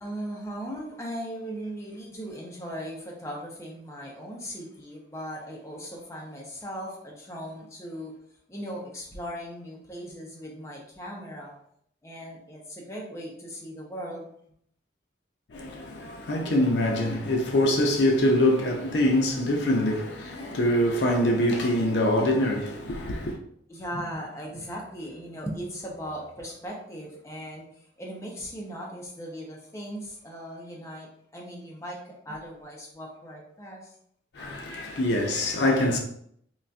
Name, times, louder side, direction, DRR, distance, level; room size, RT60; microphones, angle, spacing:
voice 1, 0.0-8.1 8.5-11.5 12.0-14.3 23.7-33.9, equal, 15° left, 0.6 m, -38 dB
voice 2, 15.5-23.4 34.3-36.0, left 1 dB, 60° left, 0.5 m, -24 dB
3.8 x 2.4 x 2.2 m
head